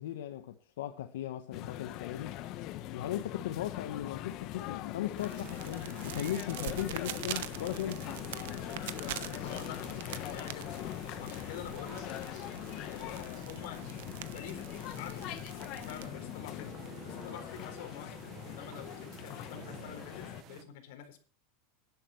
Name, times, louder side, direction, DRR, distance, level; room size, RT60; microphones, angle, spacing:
voice 1, 0.0-2.3 2.9-8.1, left 12 dB, 85° left, 1.3 m, -37 dB
sound 1, 1.5-20.4, left 14 dB, 40° left, 1.1 m, -41 dB
sound 2, 5.2-16.1, right 14 dB, 70° right, 1.1 m, -45 dB
sound 3, 5.4-20.6, right 12 dB, 35° right, 1.1 m, -52 dB
voice 2, 9.0-10.8 11.2-12.4 12.8-13.9 14.3-14.7 15.0-15.5 15.9-16.7 17.0-18.2 18.4-21.2, left 9 dB, 60° left, 4.2 m, -47 dB
11.0 x 11.0 x 7.1 m
supercardioid pair, 165°, 0 cm